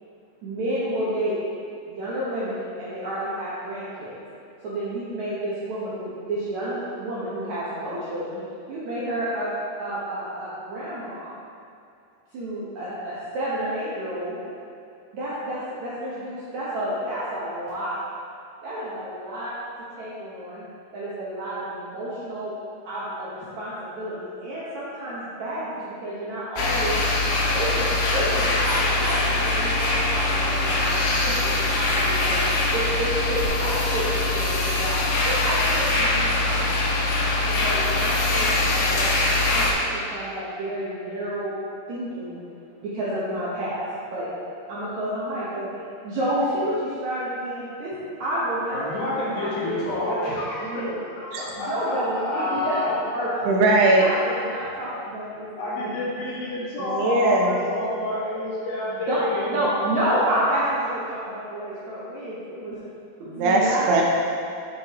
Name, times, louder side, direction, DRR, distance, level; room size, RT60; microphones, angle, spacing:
voice 1, 0.4-1.4 1.9-4.1 4.6-8.4 8.7-9.5 9.8-11.3 12.3-14.4 15.1-18.0 18.6-19.5 20.0-20.6 20.9-22.5 22.8-27.0 27.5-30.8 31.2-32.4 32.7-36.9 37.4-39.1 39.5-41.5 41.9-42.4 42.8-43.8 44.1-44.3 44.7-45.7 46.0-50.3 50.6-51.0 51.6-53.3 53.9-55.5 55.7-55.9 59.1-59.2 59.5-62.8 63.3-63.8, right 1 dB, 70° right, -9 dB, 1.8 m, -30 dB
sound 1, 26.6-39.7, left 2 dB, 90° left, 2.9 m, -23 dB
voice 2, 48.7-50.9 51.2-52.9 53.4-53.5 54.1-54.7 55.6-59.7, left 1 dB, 65° left, -8 dB, 3.4 m, -29 dB
voice 3, 53.5-54.1 56.8-57.6 63.3-63.6 63.9-64.0, right 2 dB, 85° right, -1 dB, 2.8 m, -19 dB
7.5 x 7.4 x 3.0 m, 2.6 s
omnidirectional pair, 4.6 m